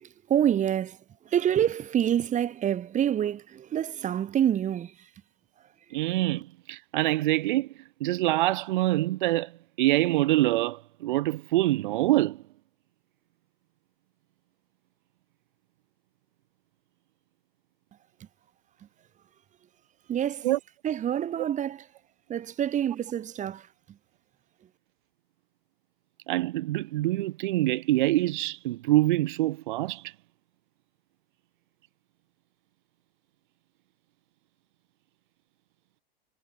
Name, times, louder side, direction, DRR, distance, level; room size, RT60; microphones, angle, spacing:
voice 1, 0.0-1.0 1.3-4.9 20.1-20.5 20.8-21.8 22.3-23.7, right 10 dB, 25° right, 1.6 m, -27 dB
voice 2, 5.9-7.7 8.0-9.5 9.8-12.4 20.4-20.6 26.3-30.1, right 17 dB, 55° right, 0.6 m, -25 dB
figure-of-eight pair, 85°, 30 cm